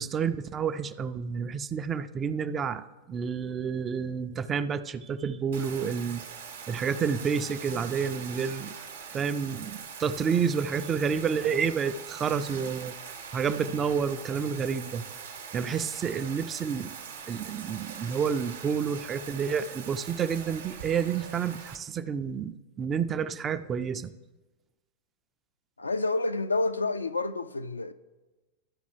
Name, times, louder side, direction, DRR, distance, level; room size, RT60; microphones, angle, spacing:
voice 1, 0.0-6.3 6.7-8.7 9.1-12.9 13.3-15.1 15.5-16.9 17.3-24.1, right 6 dB, 25° right, 0.3 m, -29 dB
Bathtub (filling or washing), 5.5-21.8, right 6 dB, 65° right, 0.7 m, -42 dB
voice 2, 25.8-27.9, left 3 dB, 80° left, 0.3 m, -29 dB
13.0 x 5.2 x 3.2 m
figure-of-eight pair, 90°, 0 cm